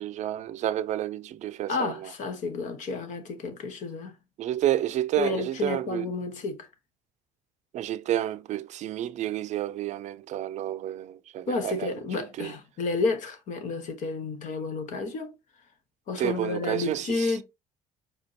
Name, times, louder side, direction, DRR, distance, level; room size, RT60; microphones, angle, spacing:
voice 1, 0.0-2.1 4.4-6.1 7.7-12.5 16.2-17.4, right 12 dB, 50° right, 0.5 m, -30 dB
voice 2, 1.7-4.1 5.2-6.7 11.5-15.3 16.1-17.4, left 3 dB, 60° left, 1.3 m, -31 dB
5.0 x 3.8 x 2.8 m
hypercardioid pair, 60°, 15 cm